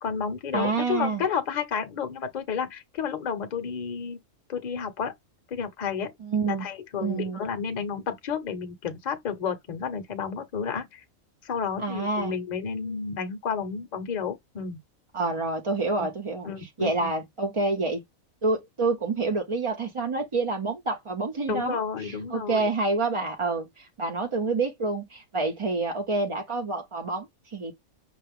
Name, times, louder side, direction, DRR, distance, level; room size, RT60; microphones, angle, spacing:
voice 1, 0.0-4.2 4.5-5.1 5.5-6.1 6.5-11.0 11.4-14.8 16.0-16.1 16.4-17.1 21.5-22.7, left 6 dB, 40° left, 0.7 m, -31 dB
voice 2, 0.5-1.2 6.2-6.7 7.0-7.4 11.8-12.3 15.1-16.5 16.8-18.0 18.4-27.7, right 3 dB, 45° right, 0.4 m, -28 dB
5.6 x 2.4 x 3.4 m
omnidirectional pair, 1.4 m